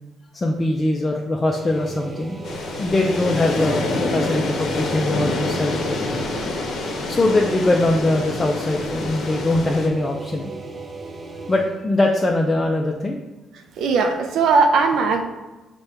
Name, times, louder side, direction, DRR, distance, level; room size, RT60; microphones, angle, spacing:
voice 1, 0.3-2.4 2.8-6.0 7.1-10.5 11.5-13.2, left 2 dB, 25° left, 0 dB, 0.4 m, -22 dB
sound 1, 1.4-11.8, right 2 dB, 35° right, 0.7 m, -36 dB
sound 2, 2.4-9.9, left 2 dB, 65° left, 0.7 m, -27 dB
voice 2, 13.8-15.2, right 4 dB, 80° right, 4 dB, 0.4 m, -18 dB
4.9 x 2.2 x 4.5 m, 1.1 s
cardioid pair, 90°, 0 cm